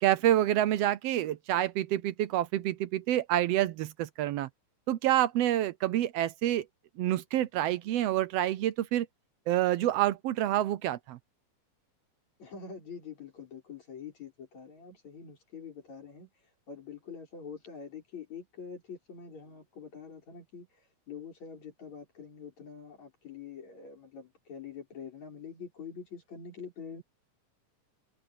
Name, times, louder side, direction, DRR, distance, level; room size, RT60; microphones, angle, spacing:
voice 1, 0.0-4.5 4.9-6.6 7.0-9.1 9.5-11.2, right 13 dB, 75° right, 1.5 m, -27 dB
voice 2, 12.4-16.3 16.7-20.7 21.1-27.0, left 6 dB, 65° left, 7.4 m, -45 dB
omnidirectional pair, 3.4 m